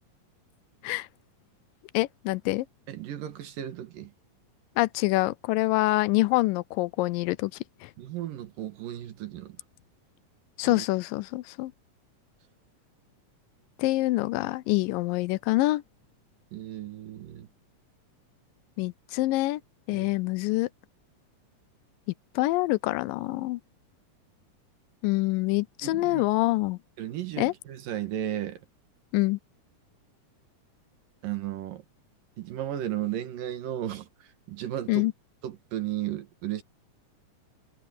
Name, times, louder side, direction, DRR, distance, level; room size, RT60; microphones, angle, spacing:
voice 1, 1.9-2.7 4.8-7.5 7.8-7.9 10.6-11.7 13.8-15.8 18.8-19.6 19.9-20.7 22.4-23.6 25.0-26.8 27.4-27.5 29.1-29.4 34.9-35.1, left 19 dB, 90° left, 2.3 m, -26 dB
voice 2, 2.9-4.1 8.0-9.6 10.7-10.9 16.5-17.5 19.9-20.2 25.8-26.3 27.0-28.6 31.2-31.8 32.4-34.1 34.5-35.1 35.4-36.6, right 12 dB, 80° right, 3.3 m, -34 dB
omnidirectional pair, 3.9 m